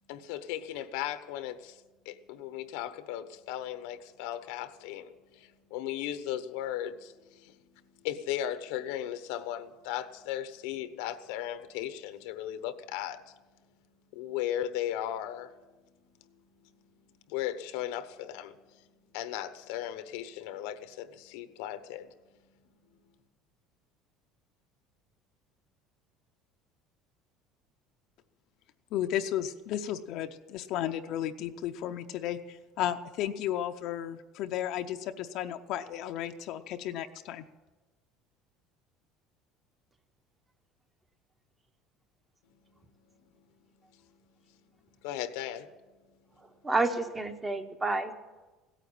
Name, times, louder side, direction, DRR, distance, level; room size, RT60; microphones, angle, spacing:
voice 1, 0.1-1.8 2.0-7.6 8.0-13.2 14.1-15.5 16.2-16.3 17.3-18.5 19.1-22.1 45.0-45.7, left 11 dB, 90° left, 11 dB, 1.0 m, -36 dB
voice 2, 28.9-37.4, left 11 dB, 50° left, 7 dB, 0.6 m, -34 dB
voice 3, 46.6-48.1, right 3 dB, 10° right, 8 dB, 0.8 m, -29 dB
16.5 x 9.1 x 8.7 m, 1.2 s
cardioid pair, 175°, 0 cm